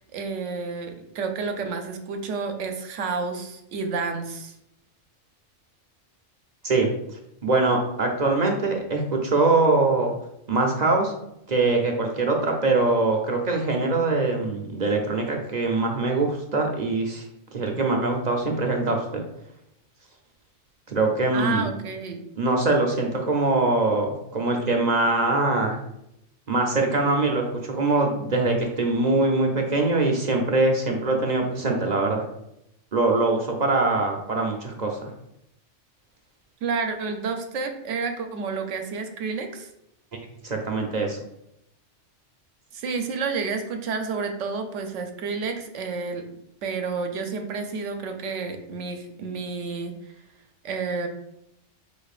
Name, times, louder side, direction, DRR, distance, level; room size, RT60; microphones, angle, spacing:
voice 1, 0.1-4.5 21.3-22.2 36.6-39.7 42.7-46.2 46.6-49.9 50.6-51.1, right 4 dB, 85° right, 6 dB, 1.0 m, -30 dB
voice 2, 6.6-10.1 10.5-11.1 11.5-17.2 17.5-19.2 20.9-21.7 22.4-25.8 26.5-32.2 32.9-35.1 40.4-41.2, right 3 dB, 50° right, 2 dB, 0.6 m, -23 dB
5.1 x 4.2 x 2.4 m, 0.80 s
omnidirectional pair, 1.2 m